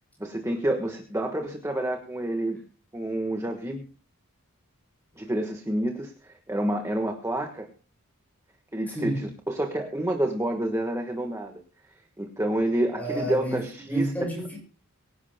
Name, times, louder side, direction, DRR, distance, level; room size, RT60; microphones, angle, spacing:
voice 1, 0.2-2.6 2.9-3.8 5.1-7.7 8.7-11.6 12.2-14.1, right 1 dB, 15° right, 1.4 m, -28 dB
voice 2, 8.9-9.3 13.0-13.6 13.9-14.6, right 1 dB, 5° left, 7.1 m, -29 dB
24.0 x 11.0 x 2.2 m
head